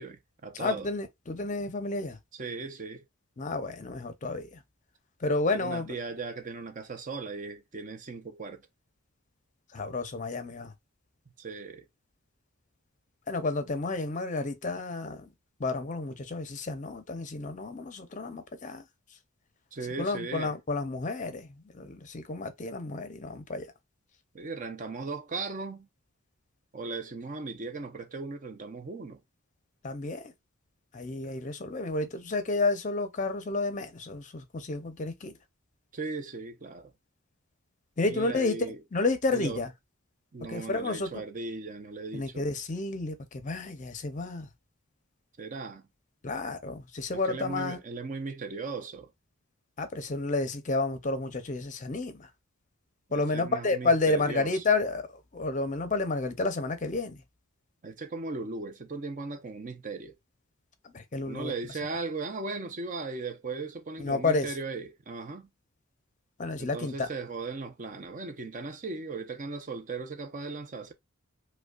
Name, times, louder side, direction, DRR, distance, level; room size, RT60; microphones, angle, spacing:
voice 1, 0.0-0.9 2.3-3.0 5.5-8.6 11.4-11.9 19.7-20.5 24.3-25.9 26.7-29.2 35.9-36.9 38.0-38.8 39.3-39.6 40.3-42.5 45.4-45.9 47.1-49.1 53.1-54.6 57.8-60.2 61.3-65.5 66.6-70.9, right 3 dB, 40° right, 0.5 m, -37 dB
voice 2, 0.6-2.2 3.4-4.6 5.2-6.0 9.7-10.7 13.3-15.3 15.6-18.8 20.0-23.7 29.8-30.3 30.9-35.3 38.0-38.6 38.9-39.7 40.5-41.2 42.1-44.5 46.2-47.8 49.8-52.3 53.1-55.1 55.3-57.2 60.8-61.5 64.0-64.5 66.4-67.1, left 3 dB, 35° left, 0.6 m, -31 dB
4.9 x 2.2 x 2.2 m
head